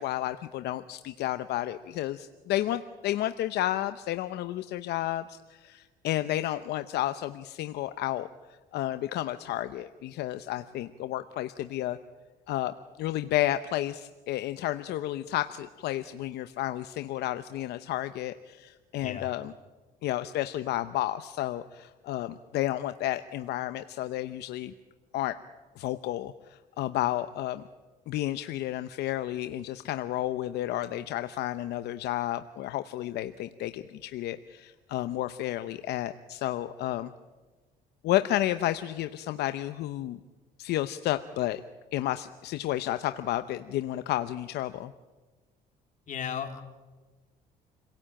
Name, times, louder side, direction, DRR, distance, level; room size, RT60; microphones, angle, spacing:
voice 1, 0.0-8.3 8.7-12.0 12.5-19.5 20.0-24.7 25.1-25.4 25.8-27.6 28.1-37.1 38.0-40.2 40.6-41.6 41.9-44.9, left 14 dB, 75° left, 10 dB, 0.8 m, -31 dB
voice 2, 46.1-46.6, left 8 dB, 50° left, 4 dB, 3.4 m, -35 dB
28.5 x 17.5 x 8.9 m, 1.3 s
cardioid pair, 110°, 17 cm